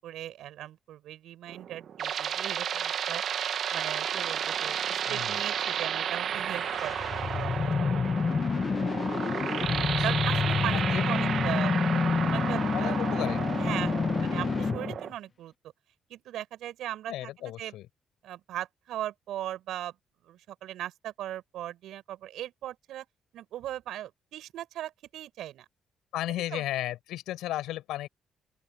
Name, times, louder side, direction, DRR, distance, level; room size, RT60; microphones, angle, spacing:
voice 1, 0.0-8.6 10.0-13.2 13.6-15.5 16.1-17.8 18.2-19.9 20.2-23.1 23.3-25.6 26.3-26.6, right 12 dB, 80° right, 8.0 m, -39 dB
sound 1, 1.5-15.1, right 8 dB, 65° right, 1.8 m, -32 dB
voice 2, 5.1-5.4 9.7-9.8 10.1-10.2 10.7-11.2 12.7-13.4 17.1-17.9 26.1-28.1, left 14 dB, 90° left, 6.0 m, -35 dB
sound 2, 6.3-15.0, left 5 dB, 40° left, 1.2 m, -28 dB
open air
cardioid pair, 90°, 0 cm